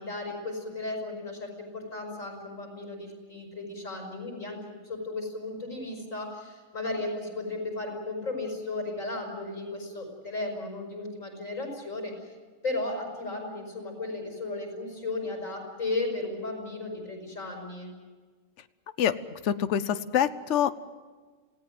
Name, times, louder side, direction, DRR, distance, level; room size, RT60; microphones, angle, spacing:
voice 1, 0.0-12.3 12.6-17.9, left 2 dB, 85° left, 1 dB, 5.9 m, -35 dB
voice 2, 19.4-20.7, left 9 dB, 65° left, 12 dB, 1.1 m, -25 dB
27.5 x 17.5 x 7.8 m, 1.5 s
omnidirectional pair, 1.3 m